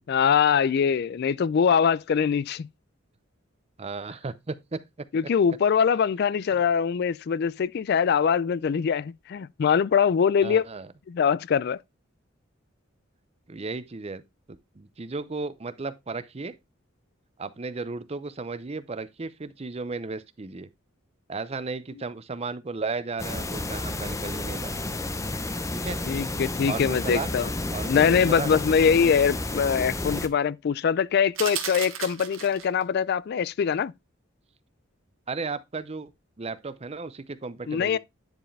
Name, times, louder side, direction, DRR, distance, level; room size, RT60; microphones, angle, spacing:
voice 1, 0.1-2.7 5.1-10.6 11.1-11.8 26.1-27.5 27.9-33.9 37.7-38.0, left 7 dB, 55° left, 0.3 m, -23 dB
voice 2, 3.8-5.1 6.5-6.6 10.4-10.9 13.5-14.2 14.7-16.5 17.4-20.7 21.3-24.7 25.7-26.0 26.7-27.3 27.7-28.6 30.1-30.2 35.3-36.1 36.4-38.0, right 3 dB, 30° right, 0.6 m, -34 dB
sound 1, 23.2-30.3, left 2 dB, 15° left, 0.7 m, -31 dB
sound 2, 31.4-32.8, right 9 dB, 80° right, 1.4 m, -34 dB
10.5 x 4.7 x 3.2 m
head